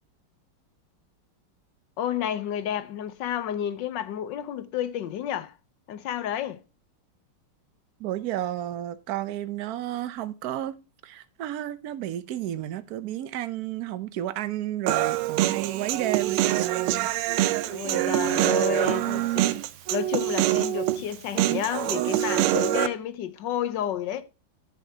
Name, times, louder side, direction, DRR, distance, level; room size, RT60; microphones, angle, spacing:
voice 1, 2.0-5.5 5.9-6.6 17.7-19.6 19.9-24.2, left 10 dB, 65° left, 1.3 m, -31 dB
voice 2, 8.0-10.7 11.0-17.1, right 12 dB, 65° right, 0.9 m, -32 dB
Human voice, 14.9-22.9, right 14 dB, 90° right, 1.5 m, -25 dB
11.5 x 7.2 x 2.8 m
omnidirectional pair, 2.4 m